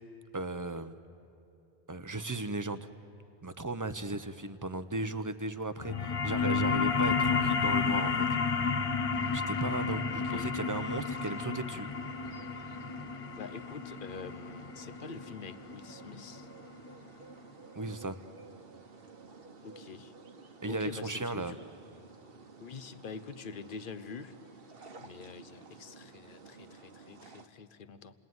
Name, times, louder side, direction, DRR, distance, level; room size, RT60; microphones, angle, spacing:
voice 1, 0.3-0.9 1.9-2.9 3.4-8.7 9.3-11.9 17.7-18.2 20.6-21.6, right 2 dB, 20° right, 11 dB, 0.7 m, -36 dB
sound 1, 5.8-16.9, left 5 dB, 35° left, 0.7 m, -31 dB
sound 2, 9.1-27.5, right 4 dB, 65° right, 1.4 m, -53 dB
voice 2, 13.4-16.5 19.6-20.1 20.6-21.6 22.6-24.4 25.0-28.1, left 5 dB, 55° left, 13 dB, 1.0 m, -45 dB
30.0 x 20.0 x 9.4 m, 2.8 s
omnidirectional pair, 1.1 m